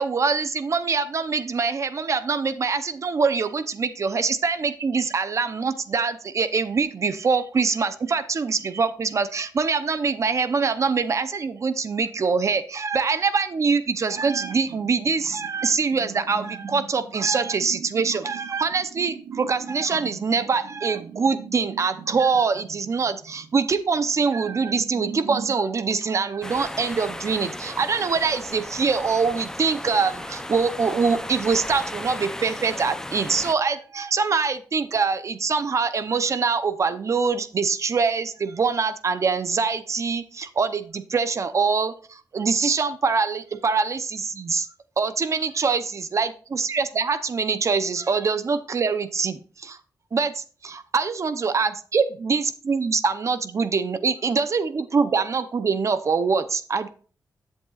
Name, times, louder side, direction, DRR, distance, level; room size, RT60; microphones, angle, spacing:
voice 1, 0.0-44.7 45.0-49.8 50.1-56.9, right 5 dB, 45° right, 12 dB, 0.7 m, -24 dB
sound 1, 14.2-25.6, right 6 dB, 70° right, 1.0 m, -40 dB
sound 2, 26.4-33.5, left 1 dB, 10° left, 0.6 m, -35 dB
10.5 x 8.3 x 2.4 m, 0.39 s
wide cardioid pair, 125°, 7 cm